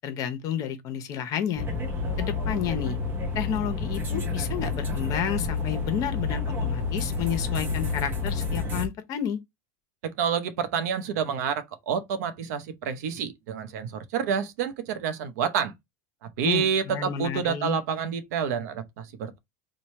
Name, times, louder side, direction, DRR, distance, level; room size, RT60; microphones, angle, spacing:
voice 1, 0.0-1.7 2.2-3.0 3.3-9.4 16.4-17.8, left 9 dB, 40° left, 0.8 m, -31 dB
sound 1, 1.6-8.9, left 4 dB, 25° right, 0.8 m, -29 dB
voice 2, 10.0-15.7 16.4-19.4, right 7 dB, 80° right, 0.7 m, -28 dB
3.1 x 2.2 x 4.2 m
supercardioid pair, 135°, 9 cm